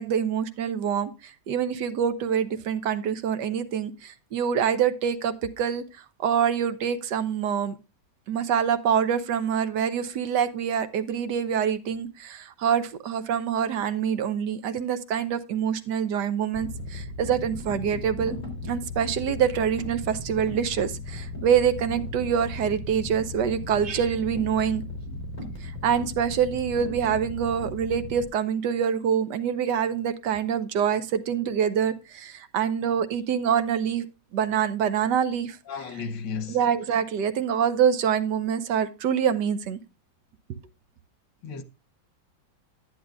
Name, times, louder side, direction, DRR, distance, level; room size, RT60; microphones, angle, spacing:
voice 1, 0.0-7.7 8.3-18.4 18.7-24.8 25.6-34.1 34.3-35.6 36.5-39.8, right 8 dB, 75° right, 1.3 m, -25 dB
sound 1, 16.5-28.3, left 2 dB, 25° left, 3.6 m, -36 dB
voice 2, 35.7-36.6 41.4-41.6, left 5 dB, 90° left, 1.8 m, -33 dB
10.5 x 10.0 x 2.4 m
omnidirectional pair, 2.0 m